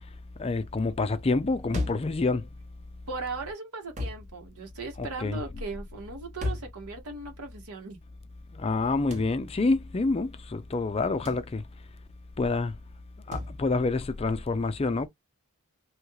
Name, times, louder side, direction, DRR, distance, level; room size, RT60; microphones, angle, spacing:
voice 1, 0.4-2.4 5.0-5.4 8.6-11.6 12.4-12.7 13.3-15.1, left 3 dB, 25° left, 0.4 m, -27 dB
sound 1, 1.7-2.2 4.0-4.3 6.4-6.8 9.1-9.4 11.2-11.5 13.3-13.6, left 2 dB, 30° right, 0.9 m, -33 dB
voice 2, 3.1-8.0, right 3 dB, 80° right, 1.5 m, -38 dB
3.2 x 2.4 x 3.1 m
head